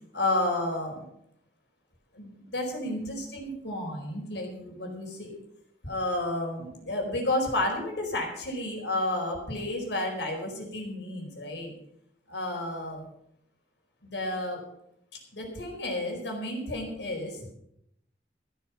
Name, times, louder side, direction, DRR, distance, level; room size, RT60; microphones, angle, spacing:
voice 1, 0.1-1.1 2.1-5.3 5.8-11.7 12.3-13.0 14.0-14.6 15.3-17.5, left 1 dB, 85° left, 1 dB, 4.8 m, -31 dB
15.0 x 10.5 x 5.9 m, 0.77 s
head